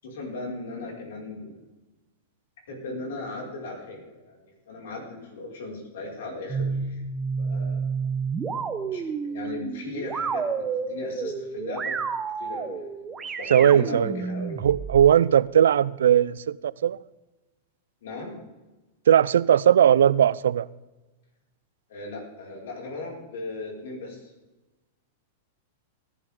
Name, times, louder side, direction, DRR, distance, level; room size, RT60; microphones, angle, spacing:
voice 1, 0.0-1.6 2.7-4.4 4.7-7.0 7.4-7.8 8.8-11.9 12.4-14.6 18.0-18.3 21.9-24.3, left 2 dB, 75° left, 5.6 m, -37 dB
sound 1, 6.5-15.1, right 5 dB, 20° right, 1.0 m, -30 dB
voice 2, 13.5-14.1 14.6-17.0 19.1-20.7, right 9 dB, 85° right, 0.5 m, -19 dB
18.5 x 11.0 x 3.8 m
hypercardioid pair, 125°, 0 cm